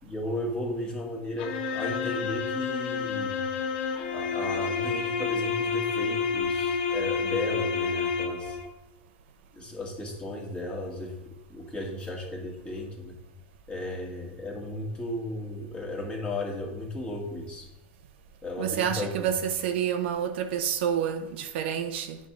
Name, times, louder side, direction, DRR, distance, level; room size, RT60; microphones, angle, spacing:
voice 1, 0.0-3.4 4.1-8.6 9.5-13.2 13.7-17.7 18.4-19.2, left 1 dB, 15° left, 1.9 m, -35 dB
sound 1, 1.4-8.7, left 5 dB, 70° left, 1.0 m, -29 dB
voice 2, 18.6-22.2, right 8 dB, 70° right, 0.8 m, -28 dB
8.9 x 3.5 x 5.8 m
supercardioid pair, 135°, 6 cm